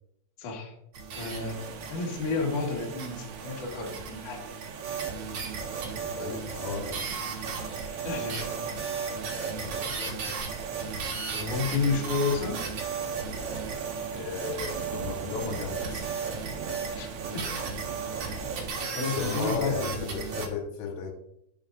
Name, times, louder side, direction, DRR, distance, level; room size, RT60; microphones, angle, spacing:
voice 1, 0.4-0.7 1.2-1.6 1.9-4.4 8.0-8.5 11.3-12.6 16.9-17.1 17.3-17.6 18.9-20.1, left 4 dB, 55° left, -2 dB, 2.4 m, -30 dB
sound 1, 0.9-20.5, right 5 dB, 70° right, 1.8 m, -35 dB
sound 2, 1.1-18.7, right 6 dB, 90° right, 2.3 m, -43 dB
voice 2, 5.9-7.3 9.5-10.2 14.1-16.1 19.0-21.1, left 5 dB, 75° left, 1 dB, 3.7 m, -36 dB
13.5 x 5.8 x 2.6 m, 0.77 s
omnidirectional pair, 6.0 m